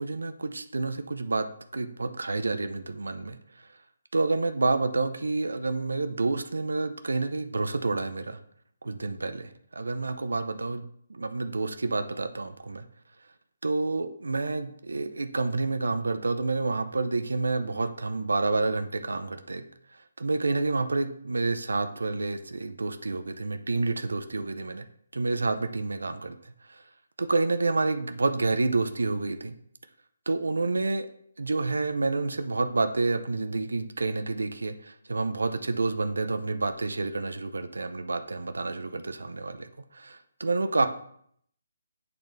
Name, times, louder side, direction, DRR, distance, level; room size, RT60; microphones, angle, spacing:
voice 1, 0.0-1.5 1.7-3.4 4.1-8.4 8.8-9.5 9.8-12.8 13.6-19.6 20.2-24.8 25.1-26.4 27.2-29.5 30.3-31.1 31.4-34.7 35.1-39.7 40.0-40.9, right 3 dB, 90° right, 8 dB, 0.6 m, -28 dB
8.5 x 3.9 x 3.3 m, 0.65 s
hypercardioid pair, 160°, 0 cm